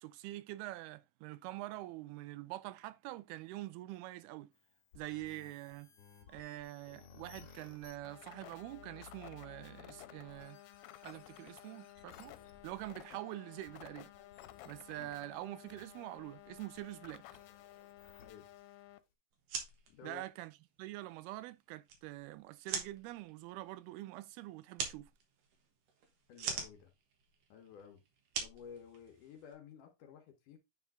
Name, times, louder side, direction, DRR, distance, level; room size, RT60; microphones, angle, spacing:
voice 1, 0.0-4.5 5.0-5.9 6.3-10.6 11.0-12.4 12.6-14.1 14.7-17.2 20.0-20.5 20.8-25.1, right 17 dB, 90° right, 2.5 m, -45 dB
sound 1, 4.5-18.9, left 7 dB, 50° left, 2.0 m, -60 dB
sound 2, 8.0-19.0, left 15 dB, 90° left, 2.5 m, -55 dB
sound 3, 19.3-29.5, right 6 dB, 65° right, 2.7 m, -45 dB
voice 2, 19.9-20.2 26.3-26.9 27.5-28.0 28.4-30.6, left 7 dB, 70° left, 2.3 m, -53 dB
9.4 x 3.6 x 3.5 m
omnidirectional pair, 4.4 m